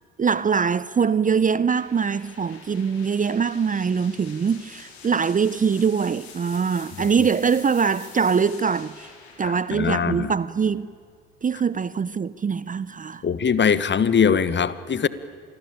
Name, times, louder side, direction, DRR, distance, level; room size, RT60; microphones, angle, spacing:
voice 1, 0.2-9.1 9.4-10.9 11.4-13.2, right 6 dB, 25° right, 0.7 m, -23 dB
sound 1, 1.7-11.4, left 6 dB, 85° left, 4.3 m, -47 dB
voice 2, 9.4-10.3 13.2-15.1, left 6 dB, 35° left, 1.4 m, -21 dB
26.5 x 21.0 x 8.8 m
hypercardioid pair, 55°, 32 cm